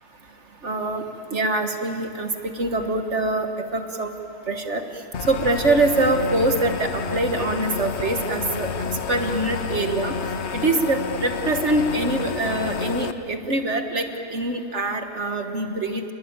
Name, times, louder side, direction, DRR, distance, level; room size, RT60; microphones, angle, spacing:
voice 1, 0.6-1.0 1.3-4.1 4.5-4.8 5.3-10.1 10.5-16.0, right 2 dB, 50° right, 5 dB, 1.8 m, -24 dB
sound 1, 5.1-13.1, left 5 dB, 50° left, 1.0 m, -29 dB
29.5 x 20.5 x 8.9 m, 2.8 s
omnidirectional pair, 1.6 m